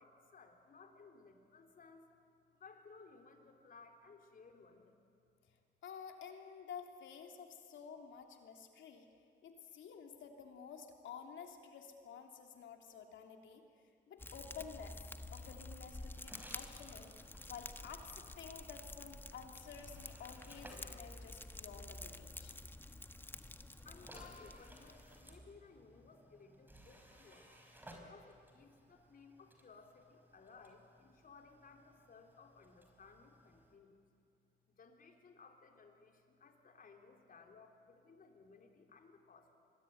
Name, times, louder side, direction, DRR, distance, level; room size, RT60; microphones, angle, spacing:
voice 1, 0.0-2.1 2.5-5.0 23.8-27.5 28.0-34.0 34.7-39.5, left 4 dB, 45° left, 3 dB, 3.8 m, -60 dB
voice 2, 5.8-9.1 9.4-13.6 14.1-15.0 15.3-17.2 17.5-22.6, left 7 dB, 75° left, 3 dB, 3.1 m, -51 dB
Fire, 14.2-25.3, left 2 dB, 10° left, 1.1 m, -50 dB
sound 1, 15.3-22.2 23.2-33.8, equal, 10° right, 4.8 m, -60 dB
25.0 x 21.5 x 9.4 m, 2.4 s
cardioid pair, 90°, 20 cm